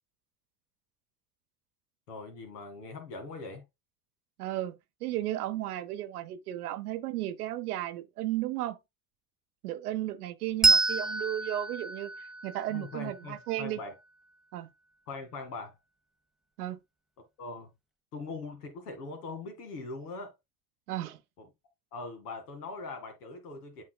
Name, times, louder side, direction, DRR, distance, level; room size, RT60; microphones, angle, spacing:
voice 1, 2.1-3.6 12.7-13.9 15.1-15.8 17.4-17.7 18.1-20.3 21.4-21.5 21.9-23.8, left 3 dB, 70° left, 2.2 m, -41 dB
voice 2, 4.4-8.8 9.6-13.8 14.5-14.7 16.6-16.8 20.9-21.2, right 14 dB, 65° right, 0.9 m, -34 dB
Bell, 10.6-13.7, right 3 dB, ahead, 0.8 m, -28 dB
10.5 x 4.5 x 2.2 m
figure-of-eight pair, 60°, 48 cm